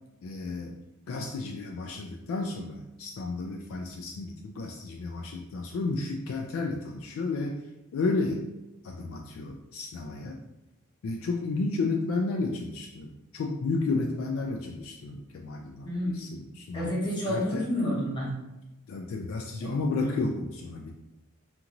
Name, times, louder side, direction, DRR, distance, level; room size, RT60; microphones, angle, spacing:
voice 1, 0.2-0.7 1.1-7.6 7.9-8.5 8.8-10.4 11.0-17.0 17.3-17.7 18.9-20.9, left 3 dB, 65° left, 2 dB, 0.3 m, -32 dB
voice 2, 15.8-16.2 16.7-18.4 19.6-19.7 20.0-20.3, left 1 dB, 20° left, -5 dB, 0.8 m, -30 dB
2.5 x 2.5 x 2.9 m, 0.96 s
head